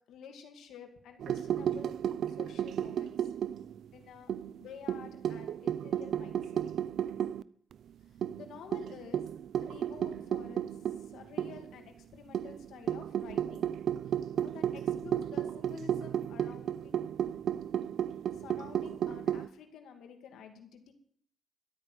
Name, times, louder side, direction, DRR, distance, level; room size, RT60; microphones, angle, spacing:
voice 1, 0.1-2.0 2.3-3.3 3.9-6.6 8.1-9.3 9.6-13.7 14.0-17.1 18.3-20.9, left 7 dB, 85° left, 6 dB, 2.4 m, -51 dB
sound 1, 1.2-3.9 4.3-7.4 7.7-7.8 8.2-11.7 12.3-19.5, right 9 dB, 75° right, 0.5 m, -33 dB
13.0 x 9.0 x 8.0 m, 0.62 s
cardioid pair, 95°, 0 cm